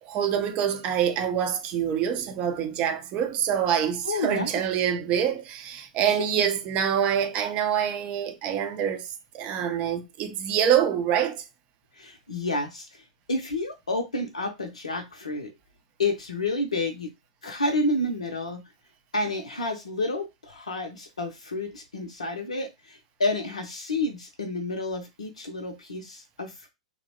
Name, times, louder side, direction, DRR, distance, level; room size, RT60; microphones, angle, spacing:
voice 1, 0.0-11.4, right 9 dB, 35° right, 0.5 m, -26 dB
voice 2, 4.0-4.5 6.1-6.4 11.9-15.5 16.0-17.1 17.4-18.6 19.1-26.7, left 2 dB, 80° left, 0.5 m, -30 dB
2.9 x 2.0 x 2.7 m
figure-of-eight pair, 100°, 4 cm